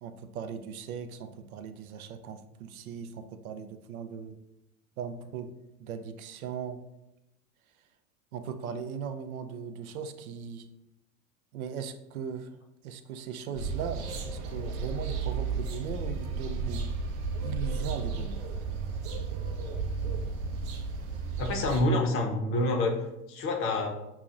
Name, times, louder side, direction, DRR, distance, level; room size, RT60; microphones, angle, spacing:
voice 1, 0.0-4.4 5.0-5.5 5.8-6.8 8.3-10.7 11.5-16.9 17.4-18.4, right 7 dB, 85° right, 9 dB, 0.5 m, -38 dB
sound 1, 13.6-21.8, right 4 dB, 45° right, 0.6 m, -33 dB
voice 2, 21.4-22.9 23.3-23.9, left 2 dB, 30° left, 3 dB, 0.6 m, -27 dB
5.7 x 2.0 x 2.4 m, 0.91 s
hypercardioid pair, 110°, 42 cm